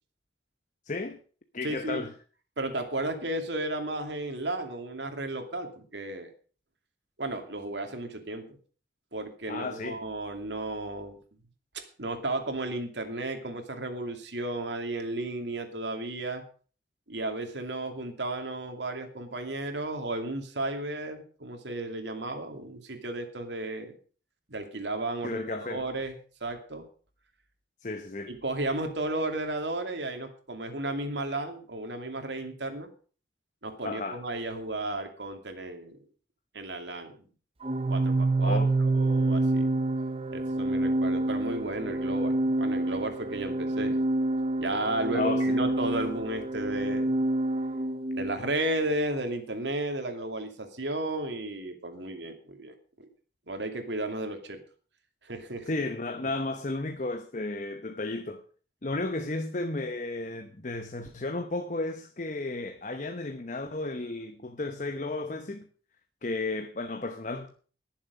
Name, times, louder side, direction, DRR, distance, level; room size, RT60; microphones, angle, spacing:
voice 1, 0.9-1.2 1.5-2.1 9.5-10.0 25.2-25.8 27.8-28.3 33.8-34.2 38.4-38.8 45.1-45.6 55.7-58.4 58.8-65.7 66.2-67.5, left 2 dB, 45° left, 0.9 m, -33 dB
voice 2, 1.6-2.0 2.6-6.3 7.2-8.6 9.1-11.2 11.7-16.4 17.1-24.0 24.5-26.8 28.3-32.9 33.6-36.0 36.5-37.1 37.9-39.7 40.3-44.0 44.6-47.1 48.2-53.1 53.5-54.6 55.2-55.7, right 2 dB, 85° right, 2.6 m, -34 dB
Organ, 37.6-48.4, right 2 dB, 30° right, 0.7 m, -27 dB
19.5 x 7.4 x 5.3 m
head